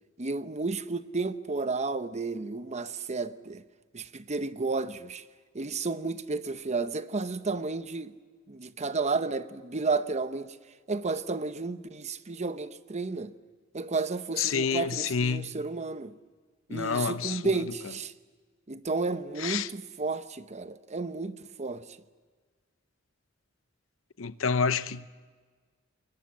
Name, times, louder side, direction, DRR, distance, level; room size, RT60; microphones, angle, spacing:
voice 1, 0.2-3.6 3.9-5.2 5.5-8.1 8.5-10.6 10.9-13.3 13.7-16.1 16.7-18.1 18.7-21.9, right 3 dB, 35° right, 0.9 m, -32 dB
voice 2, 14.4-15.6 16.7-17.6 19.4-19.7 24.2-25.1, left 5 dB, 85° left, 0.8 m, -28 dB
29.0 x 21.5 x 7.4 m
head